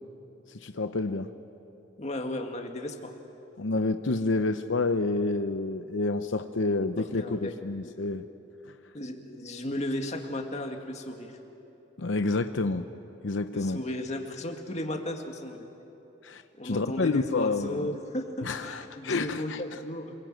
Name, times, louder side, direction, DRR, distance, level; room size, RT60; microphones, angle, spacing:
voice 1, 0.6-1.3 3.6-8.2 12.0-12.8 13.2-13.8 16.2-17.9 18.4-19.6, left 3 dB, 90° left, 9 dB, 0.8 m, -29 dB
voice 2, 2.0-3.1 6.8-7.6 7.8-8.0 8.9-11.3 13.5-15.7 16.6-20.1, left 1 dB, 40° left, 4 dB, 2.1 m, -35 dB
26.5 x 22.0 x 9.1 m, 2.9 s
head